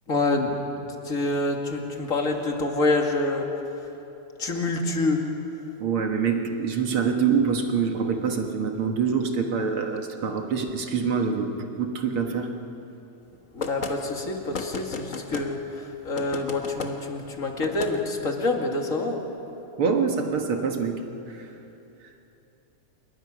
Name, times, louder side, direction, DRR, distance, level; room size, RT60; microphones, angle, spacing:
voice 1, 0.1-0.6 1.1-3.5 4.4-5.2 13.5-15.6 16.0-19.2, left 2 dB, 30° left, 2 dB, 2.0 m, -26 dB
voice 2, 5.8-12.6 19.8-21.5, right 6 dB, 50° right, 4 dB, 2.0 m, -25 dB
sound 1, 13.6-13.9 14.5-15.5 16.2-16.9 17.6-17.9, left 4 dB, 80° left, 0.7 m, -33 dB
27.5 x 22.5 x 6.2 m, 3.0 s
omnidirectional pair, 3.5 m